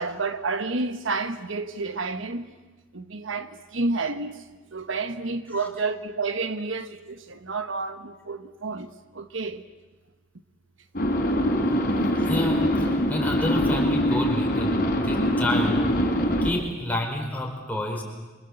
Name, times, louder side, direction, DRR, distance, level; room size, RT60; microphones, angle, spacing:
voice 1, 0.0-2.5 2.9-4.3 4.7-8.9 9.1-9.6, right 3 dB, 75° right, 1.2 m, -30 dB
sound 1, 10.9-16.5, equal, 45° left, 3.8 m, -23 dB
voice 2, 12.1-18.0, left 1 dB, 10° left, 4.8 m, -30 dB
28.0 x 25.0 x 7.9 m
head